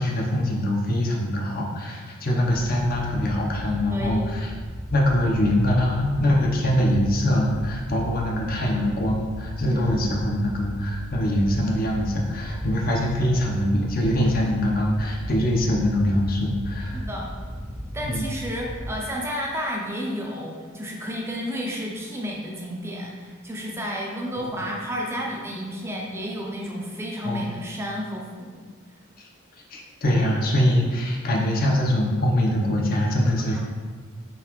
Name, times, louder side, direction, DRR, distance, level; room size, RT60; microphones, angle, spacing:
voice 1, 0.0-4.5 4.9-17.0 18.0-18.2 24.6-24.7 27.2-27.5 29.2-29.3 29.7-33.6, left 1 dB, 45° left, -1 dB, 0.6 m, -23 dB
Wind / Boat Water vehicle, 2.4-18.9, equal, 90° left, 1.2 m, -36 dB
voice 2, 3.9-4.3 9.6-10.0 16.8-17.3 17.9-28.6 33.4-33.6, equal, 15° right, -2 dB, 0.4 m, -32 dB
3.9 x 3.5 x 2.9 m, 1.5 s
head